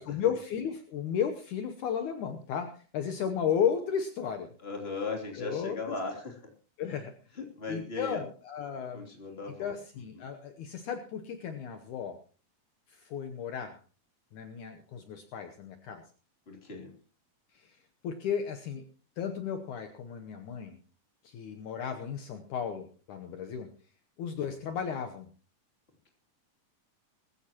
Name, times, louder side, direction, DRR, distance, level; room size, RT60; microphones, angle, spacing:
voice 1, 0.0-4.5 5.4-6.0 6.8-7.1 7.7-9.1 9.6-12.2 12.9-13.8 14.3-16.0 17.5-17.8 18.0-18.9 19.2-20.8 21.2-23.7 24.2-25.3, left 8 dB, 70° left, 6 dB, 2.3 m, -34 dB
voice 2, 4.6-6.5 6.9-7.0 7.4-8.2 8.9-9.7 10.2-10.3 16.5-16.9, left 3 dB, 20° left, 1 dB, 2.9 m, -38 dB
20.0 x 15.0 x 3.0 m, 0.36 s
omnidirectional pair, 4.0 m